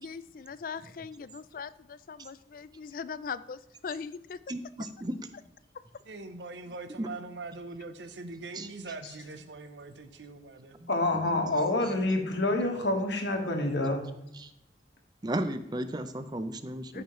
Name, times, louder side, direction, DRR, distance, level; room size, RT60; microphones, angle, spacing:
voice 1, 0.0-4.4 16.9-17.0, left 6 dB, 50° left, 0.3 m, -40 dB
voice 2, 4.5-5.3 7.0-7.1 8.5-8.7 10.8-11.4 14.3-14.5 15.2-17.0, right 1 dB, 25° right, 0.5 m, -35 dB
voice 3, 6.1-10.8, right 3 dB, 80° right, 0.8 m, -42 dB
voice 4, 10.9-14.1, left 2 dB, 75° left, 1.5 m, -27 dB
13.5 x 5.5 x 3.1 m
head